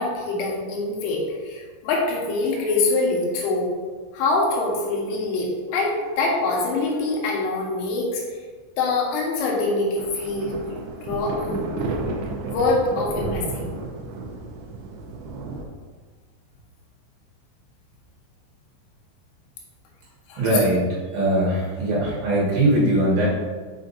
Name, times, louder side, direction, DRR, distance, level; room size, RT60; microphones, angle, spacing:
voice 1, 0.0-3.7 4.1-8.4 8.8-10.5 11.0-11.6 12.5-13.7 20.3-20.4, left 3 dB, 85° left, -2 dB, 3.7 m, -24 dB
sound 1, 10.0-15.7, right 3 dB, 80° right, 2.6 m, -32 dB
voice 2, 20.4-20.8 21.1-23.3, right 1 dB, 60° right, -7 dB, 3.1 m, -20 dB
7.5 x 5.8 x 2.6 m, 1.5 s
omnidirectional pair, 5.5 m